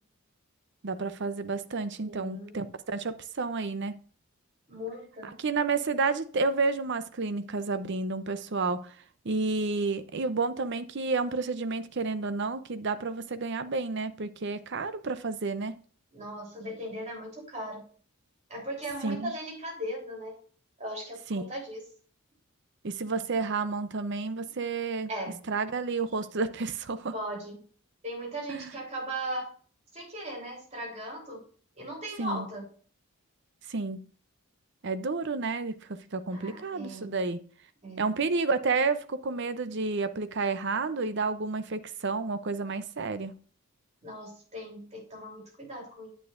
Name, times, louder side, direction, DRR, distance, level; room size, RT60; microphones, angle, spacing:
voice 1, 0.8-4.0 5.4-9.0 9.2-15.8 19.0-19.3 21.3-21.5 22.8-25.1 25.5-27.1 28.5-28.7 32.2-32.5 33.7-34.0 34.8-37.4 38.0-43.4, right 4 dB, 55° right, 0.6 m, -30 dB
voice 2, 2.0-2.6 4.7-5.4 16.1-17.8 18.5-20.3 20.8-21.8 25.1-25.4 27.1-27.6 28.0-29.5 29.9-31.4 31.7-32.6 36.3-37.2 37.8-38.1 44.0-46.1, right 1 dB, 30° right, 3.4 m, -38 dB
9.5 x 8.6 x 2.5 m
head